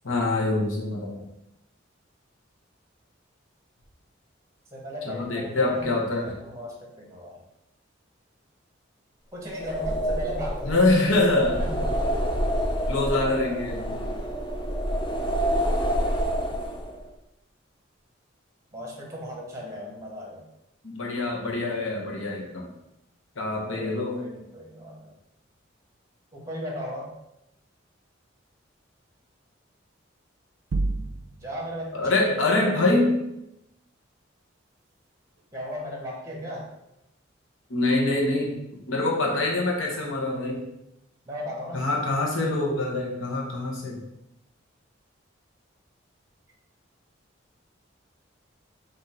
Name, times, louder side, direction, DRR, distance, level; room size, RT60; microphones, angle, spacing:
voice 1, 0.0-1.3 5.1-6.2 10.6-11.9 12.9-14.0 20.8-22.7 23.4-24.2 31.9-33.2 37.7-38.6 38.9-40.7 41.7-44.0, left 2 dB, 85° left, -2 dB, 0.9 m, -25 dB
voice 2, 4.7-7.4 9.3-10.8 11.6-11.8 18.7-20.4 23.7-25.1 26.3-27.1 31.4-33.0 35.5-36.7 41.3-41.9, equal, 15° right, -1 dB, 0.9 m, -36 dB
sound 1, 9.5-17.1, equal, 25° left, 0.5 m, -28 dB
sound 2, 30.7-31.7, right 2 dB, 85° right, 0.4 m, -28 dB
3.8 x 2.6 x 4.2 m, 0.86 s
head